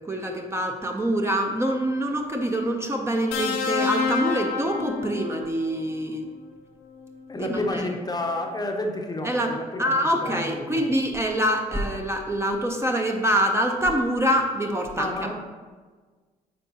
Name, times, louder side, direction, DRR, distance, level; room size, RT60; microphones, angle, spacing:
voice 1, 0.0-6.3 7.4-7.9 9.2-9.5 9.8-15.3, equal, 15° right, 2 dB, 0.7 m, -25 dB
sound 1, 3.3-5.6 6.9-7.1, left 5 dB, 80° left, 0.8 m, -27 dB
voice 2, 7.3-9.9 10.2-10.8 15.0-15.3, left 2 dB, 20° left, 3 dB, 0.8 m, -30 dB
9.6 x 3.6 x 2.8 m, 1.5 s
hypercardioid pair, 60°, 19 cm